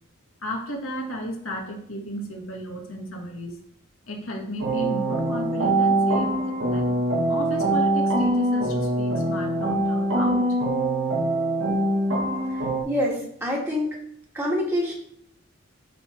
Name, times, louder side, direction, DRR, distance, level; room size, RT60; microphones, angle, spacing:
voice 1, 0.4-3.6 4.1-7.0 7.3-10.5, equal, 80° left, 0 dB, 1.9 m, -33 dB
sound 1, 4.6-12.8, right 1 dB, 70° right, 2.2 m, -23 dB
voice 2, 12.8-13.9 14.3-14.9, left 1 dB, 10° right, -3 dB, 2.3 m, -25 dB
12.0 x 4.1 x 4.7 m, 0.69 s
head